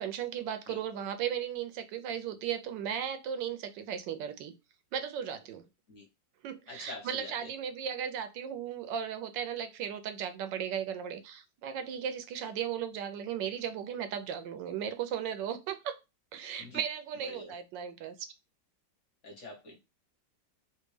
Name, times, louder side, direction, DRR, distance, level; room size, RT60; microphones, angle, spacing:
voice 1, 0.0-4.5 4.9-5.7 6.4-16.0 16.3-18.3, right 8 dB, 80° right, 1.2 m, -36 dB
voice 2, 6.7-7.5 16.6-16.8 17.2-17.5 19.2-19.8, left 2 dB, 50° left, 1.1 m, -45 dB
3.4 x 2.5 x 3.1 m
omnidirectional pair, 2.0 m